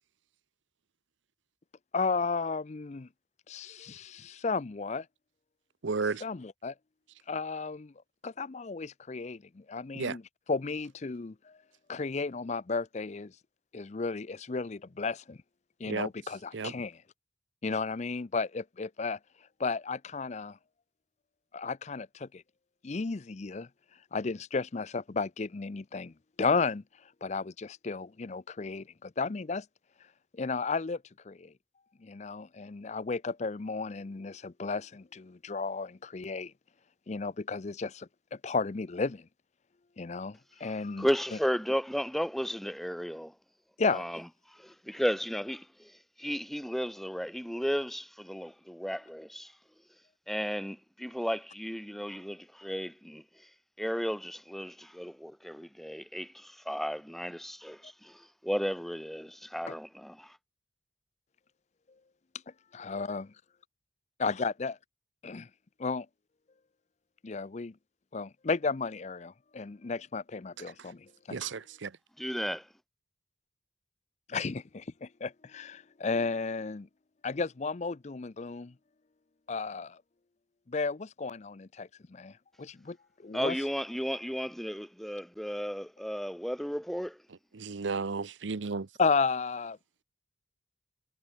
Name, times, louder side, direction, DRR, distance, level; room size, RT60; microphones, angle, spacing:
voice 1, 1.9-3.1 3.5-5.1 6.2-6.7 7.3-7.9 8.2-10.2 10.5-11.6 11.9-13.3 13.7-15.4 15.8-17.0 17.6-19.2 19.6-20.6 21.5-22.4 22.8-23.7 24.1-26.8 27.2-29.7 30.3-31.5 32.0-36.5 37.1-39.3 40.0-41.1 43.8-44.0 59.7-59.8 62.7-63.3 64.2-64.7 65.2-65.5 65.8-66.1 67.2-67.7 68.1-71.4 74.3-76.9 77.2-78.7 79.5-80.0 80.7-83.6 89.0-89.8, left 4 dB, 35° left, 0.5 m, -33 dB
voice 2, 5.8-6.2 9.9-10.2 15.9-16.1 16.5-16.7 71.3-71.9 87.5-88.9, right 4 dB, 75° right, 0.7 m, -33 dB
voice 3, 41.0-43.3 43.9-44.2 44.5-49.5 50.3-53.2 53.8-60.4 72.2-72.7 83.3-87.2, equal, ahead, 0.8 m, -34 dB
head